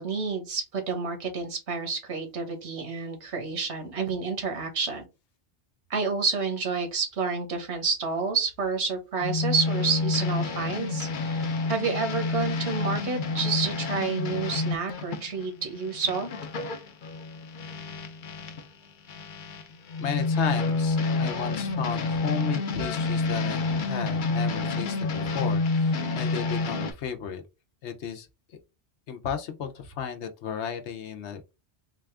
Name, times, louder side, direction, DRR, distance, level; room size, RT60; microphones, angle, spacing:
voice 1, 0.0-5.0 5.9-16.3, right 5 dB, 80° right, 1.4 m, -29 dB
sound 1, 9.2-18.7 19.1-26.9, left 3 dB, 55° left, 0.7 m, -29 dB
voice 2, 20.0-27.4 27.8-28.6 29.1-31.5, left 7 dB, 85° left, 1.0 m, -34 dB
4.1 x 2.4 x 3.3 m
omnidirectional pair, 1.1 m